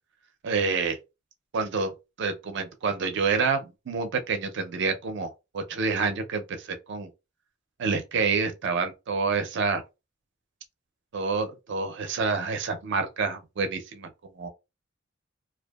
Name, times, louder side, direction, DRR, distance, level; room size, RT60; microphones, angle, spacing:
voice 1, 0.4-1.0 1.5-1.9 2.2-7.1 7.8-9.8 11.1-14.1 14.4-14.5, right 4 dB, 60° right, 0.5 m, -28 dB
2.6 x 2.3 x 2.2 m
head